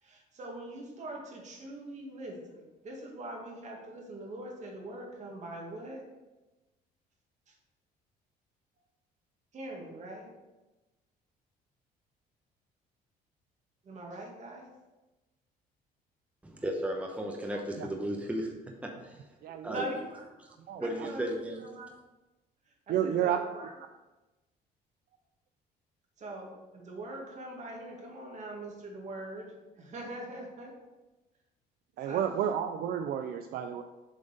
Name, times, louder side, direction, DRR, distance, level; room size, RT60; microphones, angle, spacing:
voice 1, 0.0-6.1 7.5-7.6 9.5-10.3 13.8-14.7 19.7-20.3 20.8-21.9 22.7-23.7 26.2-30.7 32.0-32.4, right 1 dB, 45° right, 0 dB, 2.0 m, -42 dB
voice 2, 16.4-18.5 18.8-19.2 19.6-19.9 20.8-21.6, right 1 dB, 10° right, 1 dB, 0.9 m, -34 dB
voice 3, 17.5-17.9 19.4-19.8 20.7-21.1 22.9-23.4 32.0-33.8, right 9 dB, 65° right, 6 dB, 0.4 m, -31 dB
7.2 x 3.9 x 5.1 m, 1.1 s
cardioid pair, 110°, 17 cm